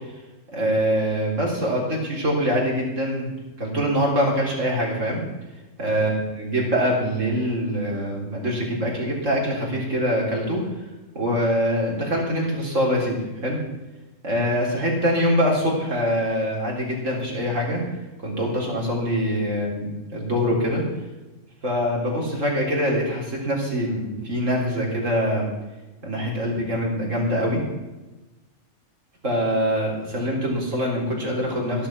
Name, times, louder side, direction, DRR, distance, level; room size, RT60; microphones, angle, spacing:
voice 1, 0.5-3.3 3.6-5.2 5.8-10.6 11.1-13.6 14.2-17.8 18.2-20.8 21.6-25.5 26.0-27.6 29.2-31.9, equal, 65° right, -2 dB, 4.1 m, -24 dB
13.0 x 11.5 x 5.8 m, 1.1 s
omnidirectional pair, 1.4 m